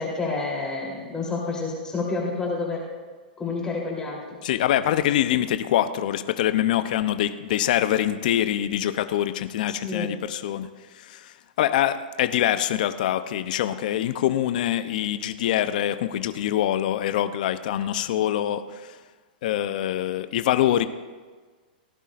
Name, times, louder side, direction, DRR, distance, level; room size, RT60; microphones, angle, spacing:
voice 1, 0.0-2.8 3.4-4.4 9.7-10.1, left 3 dB, 15° left, -4 dB, 3.4 m, -29 dB
voice 2, 4.4-10.7 11.0-18.9 19.4-20.9, left 12 dB, 60° left, 11 dB, 0.7 m, -24 dB
17.5 x 11.0 x 2.6 m, 1.4 s
hypercardioid pair, 125°, 5 cm